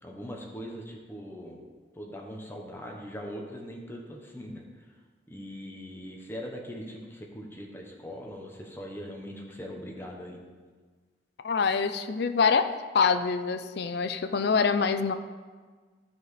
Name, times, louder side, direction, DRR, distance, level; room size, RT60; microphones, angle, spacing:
voice 1, 0.0-1.6 1.9-4.9 5.3-10.4, equal, 10° left, 0 dB, 1.0 m, -41 dB
voice 2, 11.4-12.7 12.9-15.1, left 5 dB, 60° left, 9 dB, 0.4 m, -25 dB
12.0 x 4.9 x 4.2 m, 1.5 s
head